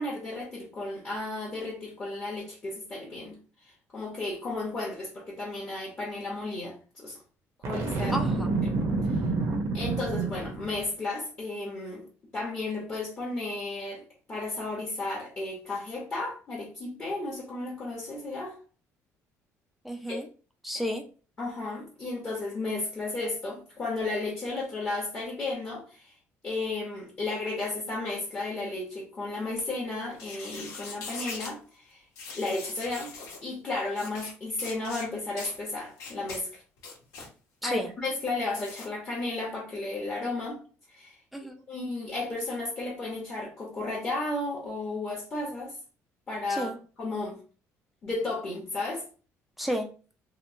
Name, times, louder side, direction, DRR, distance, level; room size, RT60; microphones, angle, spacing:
voice 1, 0.0-3.4 3.9-7.2 7.6-8.2 8.6-8.8 9.1-9.2 9.7-12.0 12.3-14.0 14.3-18.6 20.1-20.2 21.4-26.1 26.4-32.0 32.3-33.1 33.4-36.6 37.6-40.6 40.9-41.1 41.7-45.8 46.3-46.7 47.0-47.4 48.0-49.0, left 2 dB, 30° left, 0.8 m, -33 dB
Boom, 7.6-10.8, right 3 dB, 60° right, 0.7 m, -28 dB
voice 2, 8.1-8.5 19.8-20.3 20.6-21.0 37.6-37.9 41.3-41.6 46.5-46.8 49.6-49.9, equal, ahead, 0.3 m, -31 dB
sound 1, 30.1-31.5 32.2-33.4 33.9-34.3 34.6-35.1 35.4-35.6 36.0-36.4 36.8-37.3 38.5-38.9, left 4 dB, 80° left, 1.0 m, -41 dB
2.9 x 2.0 x 2.6 m
cardioid pair, 150°, 6 cm